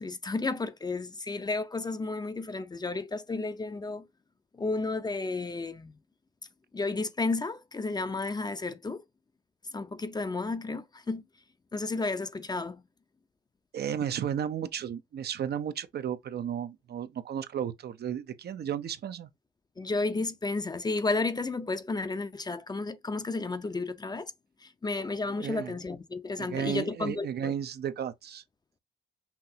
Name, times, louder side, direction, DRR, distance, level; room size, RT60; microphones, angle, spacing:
voice 1, 0.0-4.1 4.5-5.9 6.7-9.0 9.7-11.2 11.7-12.8 19.8-24.3 24.6-27.6, left 3 dB, 20° left, 0.6 m, -32 dB
voice 2, 13.7-19.3 25.4-25.7 26.4-28.4, right 9 dB, 55° right, 0.7 m, -34 dB
5.8 x 2.8 x 2.7 m
cardioid pair, 90°, 20 cm